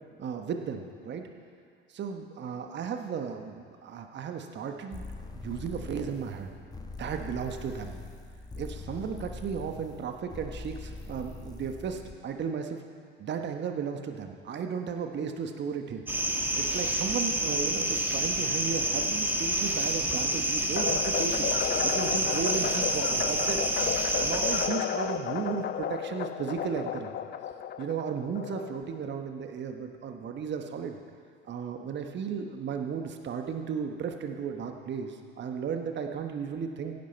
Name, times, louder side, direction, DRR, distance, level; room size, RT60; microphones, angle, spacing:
voice 1, 0.2-1.2 1.9-5.1 5.3-6.5 7.0-8.0 8.5-12.8 13.2-16.0 16.5-21.5 21.8-23.6 24.2-27.2 27.8-31.0 31.4-36.9, right 6 dB, 40° right, 5 dB, 1.2 m, -35 dB
sound 1, 4.9-12.2, left 3 dB, 15° left, 1.2 m, -42 dB
sound 2, 16.1-24.7, right 1 dB, 5° right, 1.8 m, -28 dB
sound 3, 20.8-29.1, left 9 dB, 35° left, 0.6 m, -33 dB
16.0 x 10.5 x 4.4 m, 2.1 s
hypercardioid pair, 65°, 29 cm